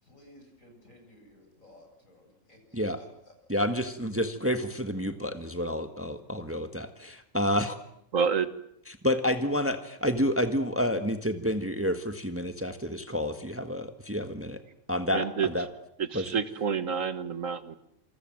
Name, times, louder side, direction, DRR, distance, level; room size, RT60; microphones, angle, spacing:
voice 1, 0.0-3.3, left 1 dB, 70° left, 3 dB, 8.0 m, -56 dB
voice 2, 3.5-7.8 9.0-14.6 14.9-15.7 16.1-16.2, equal, 10° right, 7 dB, 1.6 m, -29 dB
voice 3, 8.1-8.5 15.1-15.7 16.0-17.8, right 6 dB, 70° right, 12 dB, 1.9 m, -29 dB
27.5 x 27.5 x 7.8 m, 0.73 s
omnidirectional pair, 1.4 m